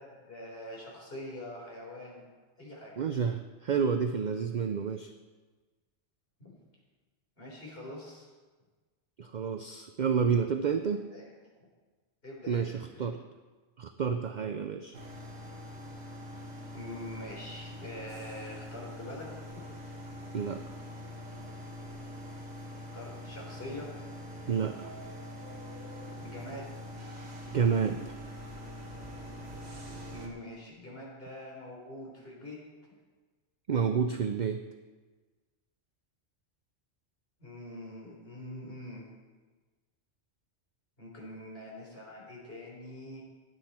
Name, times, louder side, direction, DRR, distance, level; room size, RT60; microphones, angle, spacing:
voice 1, 0.0-2.2 2.6-2.9 6.4-6.5 7.4-8.3 11.1-11.3 12.2-13.1 16.7-19.6 22.9-23.9 26.2-26.7 30.1-32.6 37.4-39.1 41.0-43.2, left 1 dB, 55° left, -3 dB, 4.1 m, -44 dB
voice 2, 3.0-5.1 9.2-11.0 12.5-13.2 13.8-15.0 20.3-20.6 24.5-24.9 27.5-28.1 33.7-34.6, right 6 dB, 50° right, 7 dB, 0.6 m, -29 dB
sound 1, 14.9-30.3, left 1 dB, 65° right, 2.1 m, -44 dB
15.5 x 10.5 x 4.4 m, 1.3 s
omnidirectional pair, 1.2 m